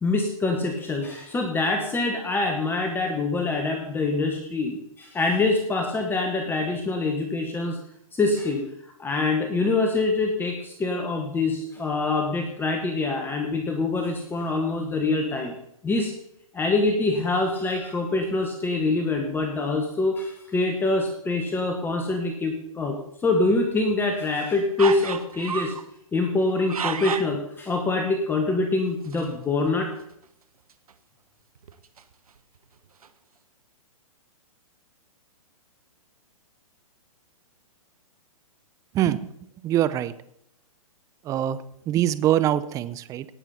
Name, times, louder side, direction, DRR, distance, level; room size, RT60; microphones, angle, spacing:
voice 1, 0.0-7.8 8.1-8.6 9.0-15.5 15.8-16.1 16.5-25.7 26.1-29.9, left 3 dB, 10° left, 4 dB, 1.2 m, -25 dB
sound 1, 24.8-25.9 26.4-27.4 29.0-29.4 29.7-29.8 30.0-30.1 30.7-30.9 31.6-32.6 33.0-33.1, right 7 dB, 80° right, 1.0 m, -32 dB
voice 2, 38.9-39.3 39.6-40.1 41.3-43.3, right 12 dB, 20° right, 14 dB, 0.5 m, -24 dB
18.0 x 7.2 x 4.1 m, 0.73 s
hypercardioid pair, 125°, 18 cm